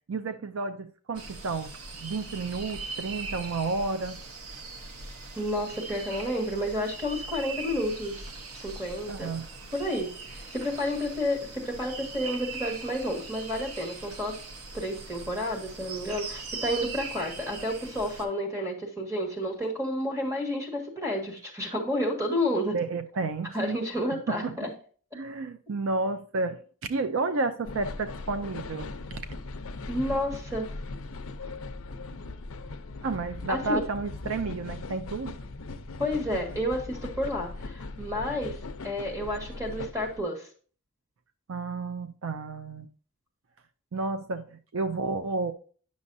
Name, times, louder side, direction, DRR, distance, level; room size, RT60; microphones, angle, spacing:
voice 1, 0.1-1.7 2.0-4.2 9.1-9.5 22.7-23.8 24.3-24.5 25.1-29.2 33.0-35.4 41.5-42.9 43.9-45.5, right 3 dB, 65° right, 0.4 m, -31 dB
sound 1, 1.1-18.2, right 4 dB, 80° right, 1.0 m, -40 dB
voice 2, 5.3-9.3 9.7-10.1 10.5-14.3 14.7-22.8 23.5-24.7 29.9-30.7 33.5-33.8 36.0-38.6 38.8-40.5, left 1 dB, 15° right, 1.6 m, -30 dB
sound 2, 27.6-40.2, left 3 dB, 70° left, 0.6 m, -39 dB
9.6 x 6.3 x 2.6 m
head